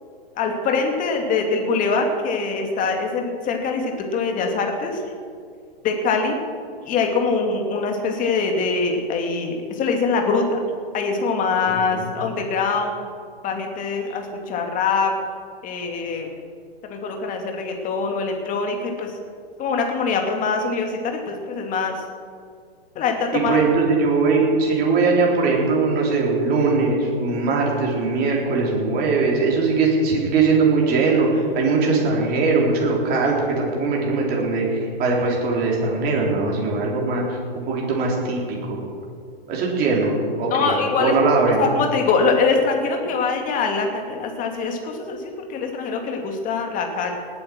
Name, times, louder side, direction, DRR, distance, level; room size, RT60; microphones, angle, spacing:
voice 1, 0.4-5.0 5.8-6.4 6.9-10.6 10.9-12.9 13.4-15.1 15.6-16.3 16.9-19.1 19.6-22.0 23.0-23.6 40.5-41.1 41.6-47.1, left 4 dB, 25° left, 3 dB, 2.4 m, -23 dB
voice 2, 11.7-12.1 23.3-38.8 39.5-41.6, right 4 dB, 30° right, -2 dB, 4.0 m, -21 dB
19.0 x 8.7 x 6.3 m, 2.2 s
hypercardioid pair, 115°, 30 cm